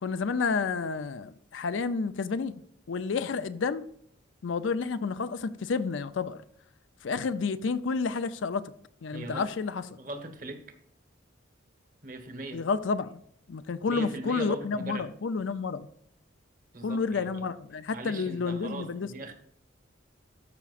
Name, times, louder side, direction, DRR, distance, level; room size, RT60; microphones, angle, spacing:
voice 1, 0.0-2.6 2.9-3.8 4.4-6.4 7.0-8.7 9.0-9.8 12.5-13.2 13.5-15.9 16.8-19.1, left 4 dB, 75° left, 0.5 m, -30 dB
voice 2, 9.1-9.5 10.0-10.7 12.0-12.7 13.9-15.1 16.7-17.4 17.9-19.3, right 2 dB, 45° right, 1.2 m, -40 dB
13.0 x 5.9 x 2.5 m
head